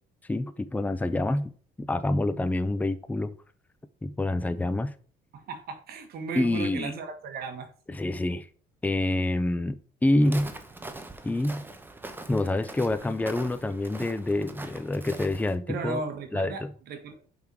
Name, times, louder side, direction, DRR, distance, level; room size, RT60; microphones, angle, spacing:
voice 1, 0.3-1.5 1.8-3.4 4.0-4.9 6.3-6.9 7.9-8.5 8.8-10.5 11.2-11.6 12.3-16.0 16.3-16.7, left 2 dB, 10° left, 0.6 m, -27 dB
voice 2, 5.3-7.7 15.7-17.2, right 4 dB, 65° right, 1.7 m, -35 dB
Walk footsteps, 10.2-15.6, right 2 dB, 10° right, 0.9 m, -42 dB
5.8 x 5.4 x 4.7 m
cardioid pair, 110°, 17 cm